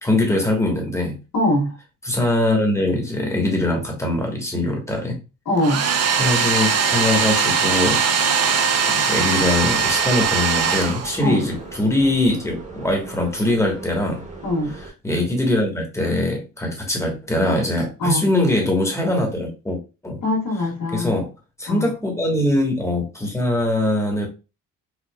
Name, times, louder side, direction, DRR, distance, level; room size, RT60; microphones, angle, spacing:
voice 1, 0.0-1.2 2.0-5.2 6.2-8.0 8.4-14.2 15.0-20.2 20.9-21.3 21.6-24.3, left 1 dB, 10° left, 1 dB, 1.2 m, -22 dB
voice 2, 1.3-1.8 5.5-5.9 11.2-11.4 14.4-14.7 18.0-18.3 20.2-21.1 21.7-21.9, left 1 dB, 70° left, -6 dB, 1.7 m, -22 dB
Domestic sounds home sounds, 5.6-11.5, right 5 dB, 45° right, 0.6 m, -20 dB
sound 1, 9.3-14.9, right 2 dB, 20° right, 1.1 m, -39 dB
4.8 x 2.7 x 2.3 m, 0.29 s
cardioid pair, 115°, 34 cm